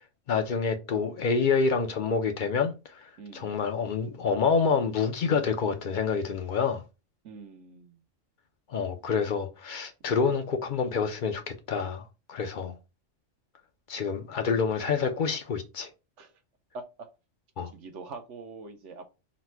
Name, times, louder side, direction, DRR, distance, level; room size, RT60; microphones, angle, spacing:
voice 1, 0.3-6.8 8.7-12.8 13.9-15.9 17.6-17.7, left 5 dB, 60° left, 0.5 m, -27 dB
voice 2, 3.2-3.6 7.2-8.0 16.2-16.3 16.7-17.1 17.7-19.0, right 3 dB, 70° right, 1.0 m, -44 dB
4.1 x 2.1 x 4.4 m
omnidirectional pair, 1.4 m